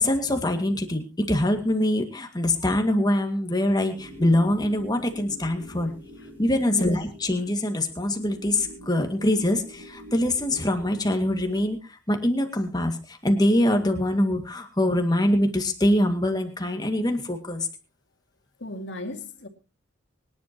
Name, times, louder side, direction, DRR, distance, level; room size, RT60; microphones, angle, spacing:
voice 1, 0.0-5.9 6.4-11.8 12.1-17.7, left 1 dB, 20° left, 2.1 m, -24 dB
sound 1, 3.9-11.8, equal, 10° right, 4.6 m, -45 dB
voice 2, 18.6-19.5, left 1 dB, 65° left, 2.5 m, -35 dB
24.5 x 10.5 x 3.0 m
head